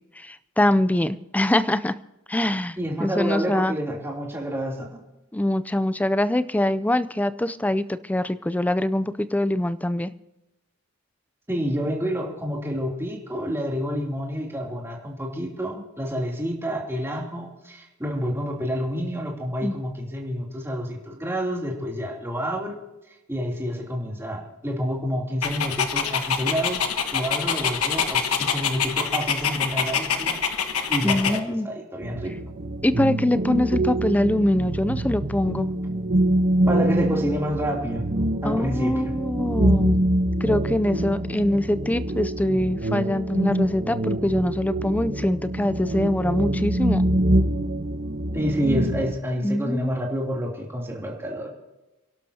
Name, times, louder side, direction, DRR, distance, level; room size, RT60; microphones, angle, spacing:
voice 1, 0.2-2.0 2.3-3.8 5.3-10.1 19.6-19.7 31.0-31.7 32.8-35.7 38.4-40.0 40.4-47.0 49.4-49.9, left 1 dB, 5° left, 15 dB, 0.4 m, -23 dB
voice 2, 2.8-5.0 11.5-22.7 23.3-26.8 27.1-30.4 30.9-32.3 36.7-38.0 38.4-39.1 42.9-43.1 48.3-51.5, equal, 10° right, -2 dB, 3.1 m, -28 dB
Dog, 25.4-31.4, left 7 dB, 85° left, 1.3 m, -25 dB
sound 1, 32.0-49.1, right 1 dB, 40° right, 1.1 m, -25 dB
29.0 x 12.0 x 2.8 m, 1.0 s
head